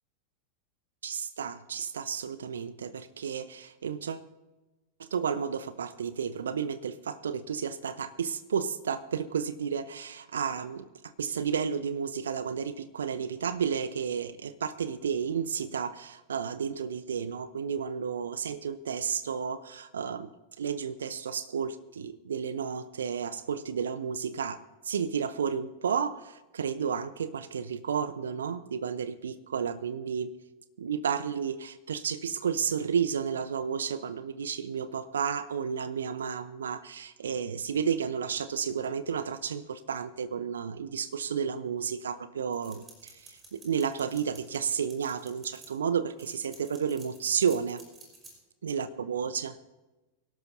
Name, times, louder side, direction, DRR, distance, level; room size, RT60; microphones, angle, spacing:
voice 1, 1.0-4.2 5.0-10.9 11.2-20.3 20.6-30.3 30.8-47.8 48.6-49.5, right 7 dB, 65° right, 15 dB, 0.7 m, -32 dB
sound 1, 42.5-45.7 46.2-48.3, right 3 dB, 20° right, 5.1 m, -51 dB
24.0 x 12.5 x 2.7 m, 1.1 s
figure-of-eight pair, 90°, 0 cm